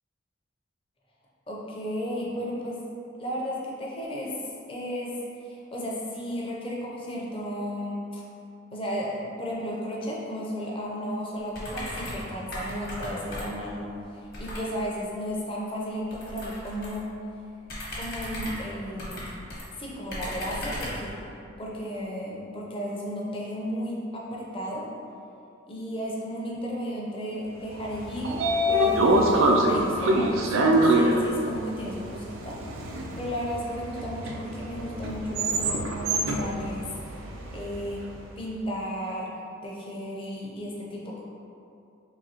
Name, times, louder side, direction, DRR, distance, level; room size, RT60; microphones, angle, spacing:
voice 1, 1.5-2.8 3.2-5.1 5.4-8.2 8.7-17.1 17.9-19.2 19.8-21.3 21.6-24.9 25.7-32.6 32.8-36.9 37.3-38.0 38.4-39.3 39.6-41.2, equal, 25° left, -4 dB, 0.5 m, -34 dB
sound 1, 11.5-12.3 12.5-13.7 14.3-14.7 16.1-17.0 17.6-19.6 20.1-21.1, equal, 45° left, 0.9 m, -36 dB
Train / Sliding door, 27.8-38.0, right 1 dB, 90° right, 0.4 m, -25 dB
3.9 x 2.7 x 2.8 m, 2.7 s
head